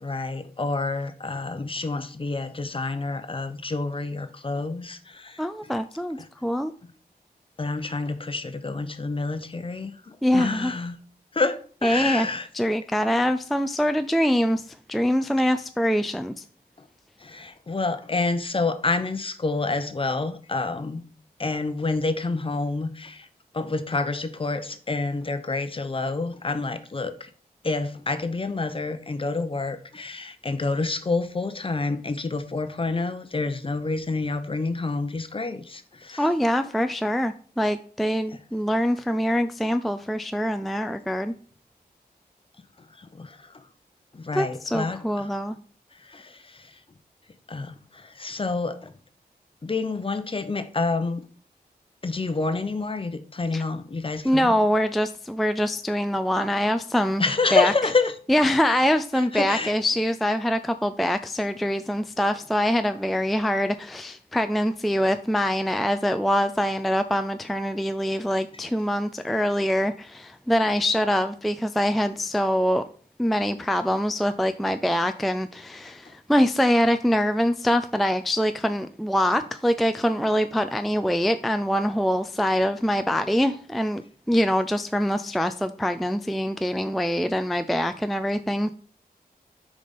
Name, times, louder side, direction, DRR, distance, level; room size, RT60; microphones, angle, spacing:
voice 1, 0.0-5.7 6.2-6.3 7.6-11.0 11.3-12.5 17.2-21.0 21.4-23.3 23.5-27.3 27.6-36.3 43.0-43.6 44.1-45.3 46.0-46.7 47.5-48.9 49.6-51.2 52.0-54.6 57.2-58.1 58.7-58.9 59.1-59.7 76.1-76.2, left 3 dB, 35° left, 0.7 m, -28 dB
voice 2, 5.4-6.7 10.2-10.7 11.8-12.3 12.5-16.4 36.2-41.3 44.3-45.6 53.5-53.6 54.2-57.2 57.5-57.7 58.3-72.8 73.2-84.0 84.3-88.7, equal, ahead, 0.3 m, -24 dB
6.5 x 5.1 x 4.1 m
wide cardioid pair, 100°, 16 cm